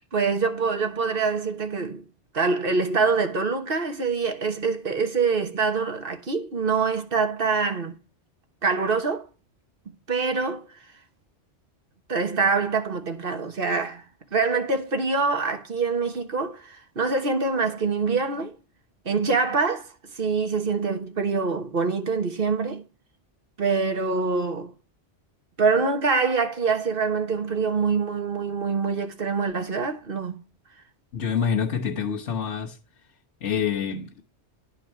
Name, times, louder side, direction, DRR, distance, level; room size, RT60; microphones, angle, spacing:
voice 1, 0.1-2.0 2.3-7.9 8.6-9.3 10.1-10.6 12.1-14.0 14.3-18.5 19.0-19.9 20.2-22.8 23.6-24.7 25.6-30.4, right 4 dB, 55° right, 1.4 m, -25 dB
voice 2, 31.1-32.8 33.4-34.2, left 7 dB, 85° left, 1.6 m, -26 dB
10.5 x 4.7 x 4.5 m
omnidirectional pair, 1.2 m